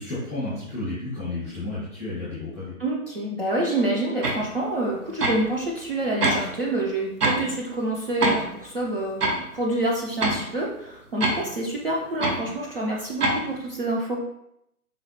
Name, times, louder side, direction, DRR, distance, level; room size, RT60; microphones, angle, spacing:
voice 1, 0.0-2.7, left 2 dB, 10° left, -12 dB, 0.5 m, -32 dB
voice 2, 2.8-14.2, right 1 dB, 40° right, -3 dB, 0.4 m, -27 dB
sound 1, 4.2-4.5 5.2-5.5 6.2-6.4 7.2-7.4 8.2-8.4 9.2-9.4 10.2-10.4 11.2-11.4 12.2-12.4 13.2-13.4, right 2 dB, 80° right, 0.9 m, -23 dB
3.9 x 2.0 x 2.8 m, 0.78 s
figure-of-eight pair, 145°, 46 cm